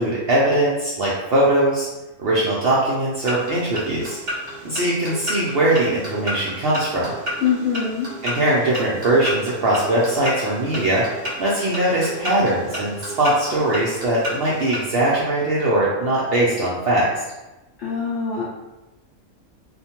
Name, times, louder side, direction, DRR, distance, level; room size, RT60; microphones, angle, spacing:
voice 1, 0.0-1.9 2.2-4.2 4.6-7.1 8.2-17.1, right 1 dB, 75° right, -6 dB, 0.5 m, -21 dB
sound 1, 3.1-14.9, equal, 50° right, 0.9 m, -32 dB
voice 2, 7.4-8.1 17.8-18.4, left 7 dB, 65° left, -6 dB, 0.7 m, -23 dB
2.4 x 2.1 x 2.8 m, 1.0 s
omnidirectional pair, 1.5 m